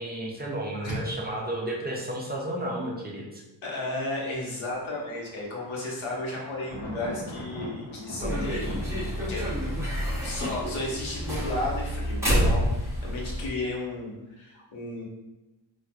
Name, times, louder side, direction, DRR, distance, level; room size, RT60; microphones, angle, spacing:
voice 1, 0.0-3.4, right 1 dB, 25° right, -3 dB, 0.3 m, -32 dB
voice 2, 3.6-9.6 10.2-15.0, left 2 dB, 85° left, -3 dB, 1.1 m, -34 dB
Thunder, 4.6-11.0, left 1 dB, 65° left, 1.0 m, -41 dB
sound 1, 8.2-13.5, equal, 5° right, 0.8 m, -28 dB
4.3 x 2.4 x 2.3 m, 1.0 s
wide cardioid pair, 150°, 46 cm